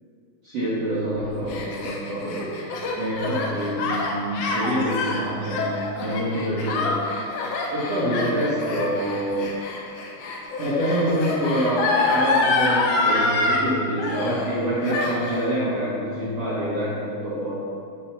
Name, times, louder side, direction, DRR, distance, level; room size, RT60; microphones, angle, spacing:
voice 1, 0.4-2.5 3.0-7.4 7.7-9.5 10.6-17.6, right 1 dB, 75° right, -9 dB, 1.4 m, -26 dB
Gasp, 1.2-13.6 14.0-14.6 14.8-15.5, left 3 dB, 75° left, 2.6 m, -26 dB
12.5 x 5.6 x 2.8 m, 2.5 s
omnidirectional pair, 4.8 m